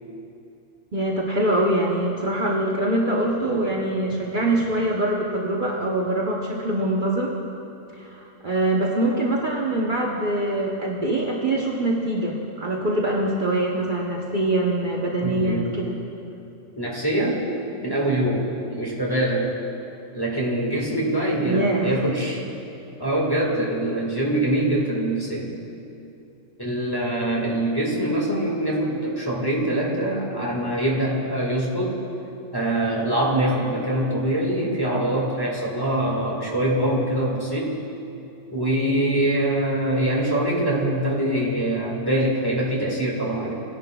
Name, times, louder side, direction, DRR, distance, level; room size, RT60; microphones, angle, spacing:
voice 1, 0.9-7.3 7.9-15.9 21.4-22.0, right 1 dB, 45° right, -3 dB, 0.9 m, -24 dB
voice 2, 15.2-15.8 16.8-17.4 17.8-19.5 20.1-22.5 23.0-25.5 26.6-32.0 32.5-37.7 38.5-43.5, right 1 dB, 20° left, -4 dB, 1.7 m, -24 dB
18.0 x 10.5 x 2.3 m, 2.8 s
omnidirectional pair, 1.3 m